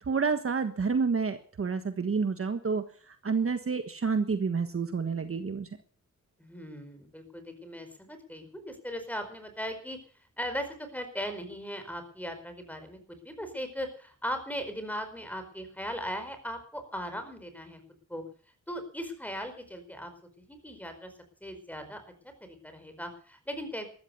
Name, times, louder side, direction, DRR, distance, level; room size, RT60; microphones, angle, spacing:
voice 1, 0.0-5.7, right 5 dB, 50° right, 9 dB, 1.5 m, -29 dB
voice 2, 6.4-10.0 10.4-17.8 18.1-18.2 18.7-20.1 20.4-21.1 21.4-22.0 22.4-23.9, equal, 5° left, 8 dB, 5.0 m, -38 dB
14.0 x 14.0 x 7.0 m, 0.44 s
wide cardioid pair, 90°, 30 cm